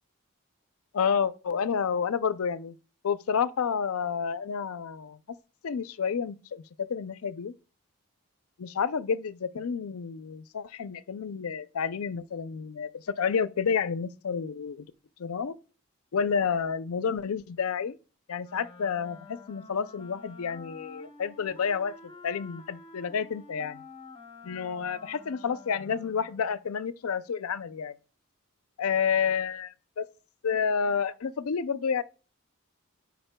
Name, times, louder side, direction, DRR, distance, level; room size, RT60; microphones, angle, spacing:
voice 1, 0.9-2.7 3.0-5.2 5.6-7.5 8.6-14.9 15.2-15.5 16.1-18.0 18.3-22.0 22.2-23.8 24.4-27.9 28.8-30.1 30.4-32.0, left 6 dB, 85° left, 0.5 m, -30 dB
Wind instrument woodwind instrument, 18.4-26.6, left 3 dB, 25° left, 0.8 m, -49 dB
13.0 x 5.3 x 2.2 m
head